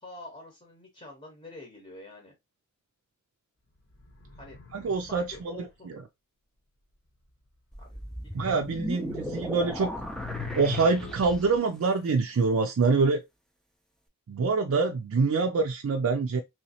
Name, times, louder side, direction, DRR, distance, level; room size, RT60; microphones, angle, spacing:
voice 1, 0.0-2.3 4.4-4.6 5.0-5.9 7.8-9.3, left 2 dB, 25° left, 0.8 m, -47 dB
sound 1, 3.9-5.6 8.7-8.8 9.7-11.6, left 6 dB, 60° left, 0.8 m, -41 dB
voice 2, 4.7-6.0 8.3-9.9 10.5-13.2 14.3-16.4, right 4 dB, 65° right, 0.4 m, -25 dB
sound 2, 7.7-11.7, left 1 dB, ahead, 0.4 m, -37 dB
3.1 x 3.0 x 2.7 m
head